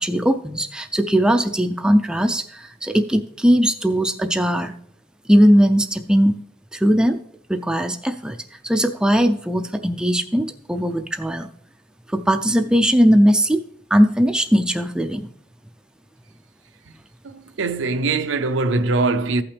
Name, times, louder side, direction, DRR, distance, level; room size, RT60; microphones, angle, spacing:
voice 1, 0.0-4.7 5.3-6.4 6.7-7.2 7.5-8.4 8.6-11.5 12.1-13.6 13.9-15.3, equal, 5° right, 0.4 m, -19 dB
voice 2, 17.2-19.4, right 3 dB, 75° right, 0.6 m, -22 dB
14.5 x 5.8 x 3.3 m
head